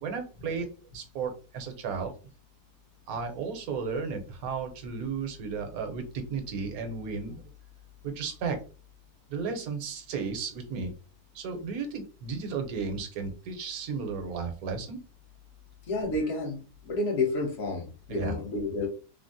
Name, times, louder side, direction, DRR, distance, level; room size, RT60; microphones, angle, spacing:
voice 1, 0.0-2.1 3.1-7.4 8.0-8.6 9.3-10.9 11.3-15.0 18.1-18.3, right 5 dB, 70° right, 6 dB, 1.1 m, -34 dB
voice 2, 15.9-18.9, left 2 dB, 50° left, 1 dB, 1.0 m, -30 dB
3.4 x 2.0 x 2.6 m, 0.35 s
omnidirectional pair, 1.6 m